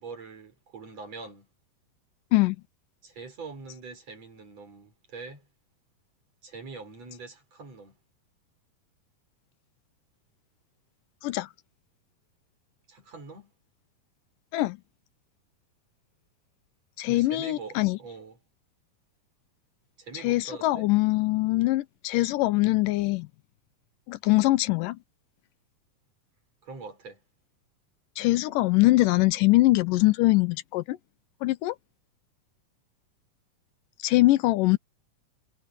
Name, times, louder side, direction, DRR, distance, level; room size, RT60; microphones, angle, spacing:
voice 1, 0.0-1.5 3.0-5.5 6.4-8.0 12.9-13.5 17.1-18.4 20.0-20.9 26.6-27.2, right 4 dB, 50° right, 6.8 m, -43 dB
voice 2, 17.0-18.0 20.1-23.3 24.1-25.0 28.2-31.0 31.4-31.8 34.0-34.8, left 19 dB, 80° left, 2.3 m, -23 dB
omnidirectional pair, 3.9 m